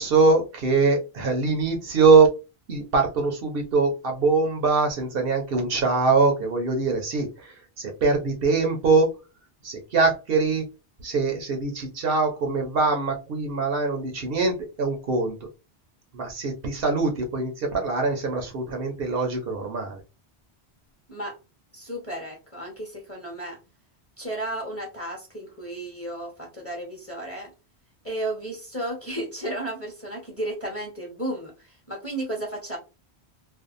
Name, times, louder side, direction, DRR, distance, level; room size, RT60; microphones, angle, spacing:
voice 1, 0.0-2.3 2.7-9.2 9.6-10.6 11.0-15.3 16.1-20.0, right 4 dB, 65° right, 3 dB, 0.8 m, -23 dB
voice 2, 21.7-23.6 24.2-27.5 28.0-32.8, right 1 dB, 15° left, 0 dB, 0.9 m, -33 dB
2.5 x 2.3 x 2.4 m, 0.29 s
omnidirectional pair, 1.1 m